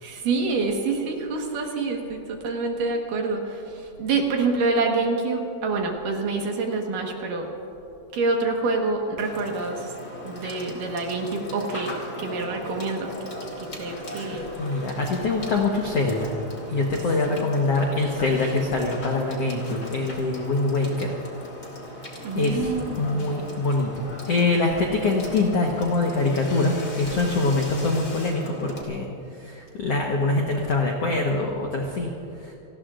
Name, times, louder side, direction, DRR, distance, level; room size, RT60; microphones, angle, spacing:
voice 1, 0.0-7.5 8.1-9.9 10.2-13.1 13.6-14.5 17.3-17.4 22.2-23.4, right 3 dB, 60° right, 1 dB, 2.7 m, -27 dB
Water / Water tap faucet / Sink (filling or washing), 9.2-28.8, left 1 dB, 30° left, 2.0 m, -38 dB
voice 2, 14.6-16.3 16.7-21.2 22.4-29.1 29.4-32.1 32.4-32.5, left 3 dB, 80° left, 0 dB, 1.3 m, -24 dB
29.5 x 19.5 x 2.5 m, 2.8 s
omnidirectional pair, 4.7 m